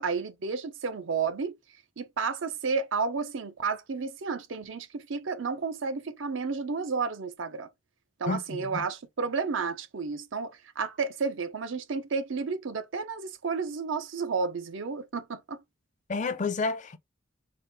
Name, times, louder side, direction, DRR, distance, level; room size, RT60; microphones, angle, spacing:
voice 1, 0.0-1.5 2.0-7.7 8.2-15.6, right 5 dB, 70° right, 0.6 m, -31 dB
voice 2, 8.3-8.8 16.1-17.0, left 4 dB, 40° left, 0.5 m, -30 dB
3.9 x 2.3 x 3.9 m
head